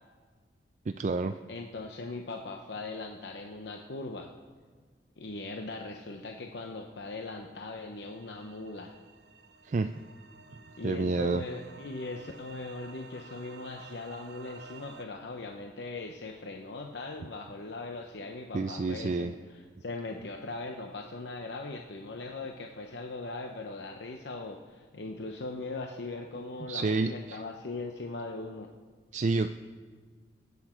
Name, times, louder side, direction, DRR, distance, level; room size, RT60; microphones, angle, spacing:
voice 1, 0.9-1.4 9.6-10.0 10.8-11.4 18.5-19.3 26.6-27.4 29.1-29.5, right 3 dB, 40° right, 8 dB, 0.3 m, -29 dB
voice 2, 1.5-4.3 5.2-8.9 10.8-19.4 19.8-28.7, left 3 dB, 75° left, 3 dB, 0.8 m, -40 dB
sound 1, 7.8-15.1, right 4 dB, 70° right, 0.8 m, -53 dB
21.0 x 8.4 x 4.4 m, 1.5 s
head